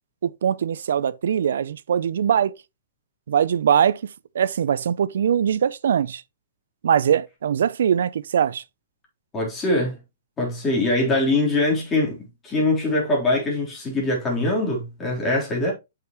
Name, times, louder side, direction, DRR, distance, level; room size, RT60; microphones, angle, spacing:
voice 1, 0.2-2.5 3.3-4.1 4.3-6.2 6.8-8.6, right 8 dB, 75° right, 0.5 m, -21 dB
voice 2, 9.3-10.0 10.4-15.7, left 2 dB, 15° left, 3.8 m, -23 dB
7.9 x 5.8 x 3.1 m
hypercardioid pair, 150°, 0 cm